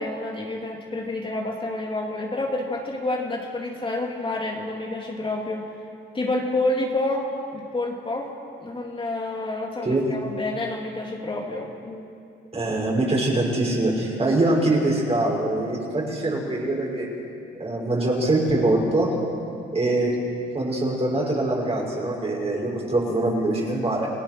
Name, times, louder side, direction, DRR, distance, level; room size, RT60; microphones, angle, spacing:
voice 1, 0.0-5.7 6.1-8.3 8.6-12.0, left 2 dB, 25° left, -1 dB, 3.0 m, -28 dB
voice 2, 12.5-17.1 17.5-19.2 19.7-20.2 20.5-24.1, right 2 dB, 30° right, -2 dB, 6.5 m, -23 dB
29.0 x 18.0 x 6.4 m, 2.6 s
cardioid pair, 90°, 20 cm